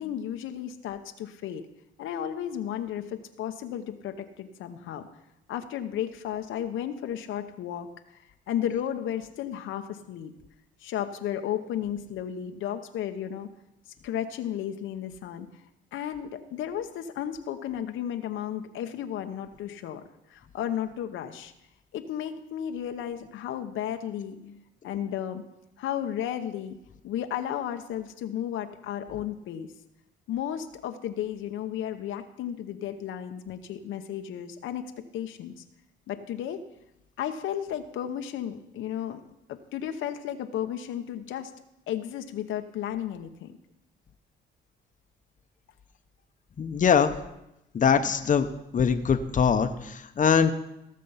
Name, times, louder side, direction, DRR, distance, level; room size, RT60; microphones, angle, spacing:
voice 1, 0.0-1.7 2.0-5.1 5.5-7.9 8.5-10.3 10.8-13.5 14.0-15.5 15.9-20.0 20.3-21.5 21.9-25.4 25.8-26.8 27.0-29.7 30.3-34.8 35.1-35.6 36.1-36.6 37.2-39.2 39.5-41.5 41.9-43.6, left 10 dB, 85° left, 7 dB, 0.9 m, -33 dB
voice 2, 46.6-47.2 47.7-48.5 48.7-50.5, left 7 dB, 40° left, 8 dB, 0.9 m, -22 dB
17.0 x 6.6 x 5.7 m, 0.87 s
cardioid pair, 90°, 20 cm